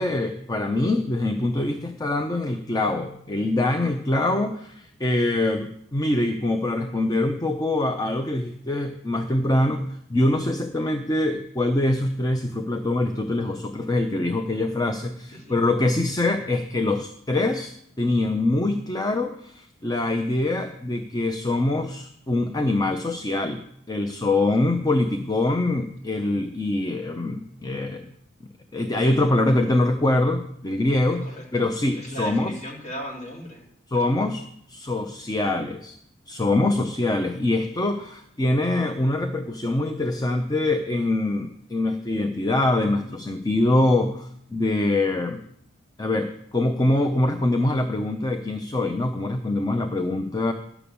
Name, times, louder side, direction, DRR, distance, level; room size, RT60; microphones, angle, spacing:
voice 1, 0.0-23.6 23.9-28.0 28.7-32.5 33.9-34.4 34.7-35.9 36.3-45.4 46.0-50.5, left 2 dB, 20° left, 6 dB, 0.6 m, -24 dB
voice 2, 31.2-31.7 31.9-34.3, equal, 35° left, -2 dB, 2.8 m, -38 dB
11.5 x 6.0 x 6.9 m, 0.72 s
head